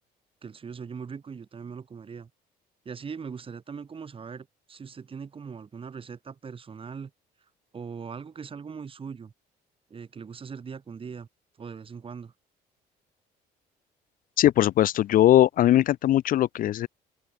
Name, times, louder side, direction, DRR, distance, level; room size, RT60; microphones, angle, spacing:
voice 1, 0.4-2.3 2.8-7.1 7.7-9.3 9.9-11.3 11.6-12.3, right 6 dB, 30° right, 2.6 m, -40 dB
voice 2, 14.4-16.9, left 13 dB, 55° left, 0.5 m, -20 dB
open air
cardioid pair, 110°, 17 cm